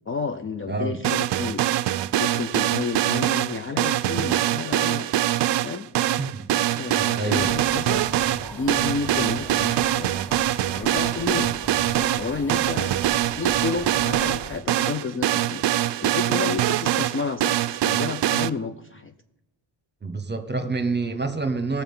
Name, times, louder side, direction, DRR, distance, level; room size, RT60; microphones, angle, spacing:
voice 1, 0.1-1.6 2.2-5.1 5.6-5.9 6.8-8.0 8.5-10.2 10.8-11.5 11.9-13.0 13.3-19.1, left 5 dB, 30° left, 7 dB, 0.4 m, -31 dB
voice 2, 0.7-1.0 6.2-6.4 6.9-7.5 20.0-21.8, right 3 dB, 20° right, 10 dB, 1.0 m, -27 dB
sound 1, 1.0-18.5, right 13 dB, 65° right, 0.5 m, -23 dB
sound 2, 7.4-14.6, right 1 dB, 5° left, 1.7 m, -39 dB
17.0 x 7.0 x 5.4 m, 0.92 s
cardioid pair, 115°, 47 cm